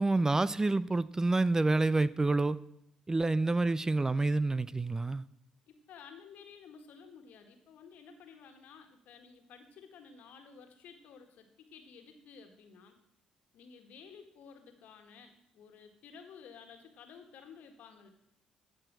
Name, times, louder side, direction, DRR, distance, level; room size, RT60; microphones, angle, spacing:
voice 1, 0.0-2.6 3.1-5.2, right 2 dB, 20° right, 18 dB, 0.4 m, -28 dB
voice 2, 5.7-13.0 13.5-18.1, left 6 dB, 65° left, 6 dB, 1.6 m, -53 dB
14.0 x 4.9 x 7.4 m, 0.77 s
hypercardioid pair, 50°, 3 cm